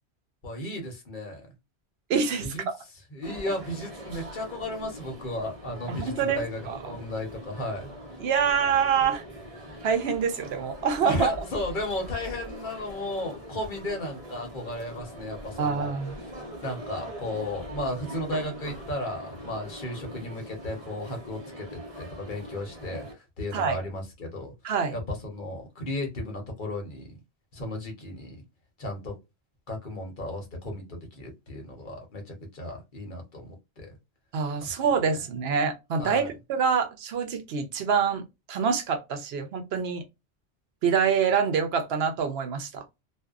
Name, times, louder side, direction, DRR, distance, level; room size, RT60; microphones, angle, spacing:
voice 1, 0.4-1.5 2.4-2.6 3.1-8.2 11.0-16.0 16.6-24.5 24.9-27.2 27.5-28.4 28.8-29.2 29.7-34.0 34.6-34.8 36.0-36.3, left 1 dB, 50° left, 0.9 m, -34 dB
voice 2, 2.1-2.5 5.9-6.4 6.7-6.8 8.2-9.2 9.8-11.3 15.6-16.2 23.5-23.8 24.6-24.9 34.3-38.2 38.5-40.0 40.8-42.8, right 6 dB, 75° right, 0.8 m, -26 dB
sound 1, 3.2-23.1, equal, 35° right, 0.9 m, -42 dB
2.5 x 2.2 x 2.3 m
omnidirectional pair, 1.1 m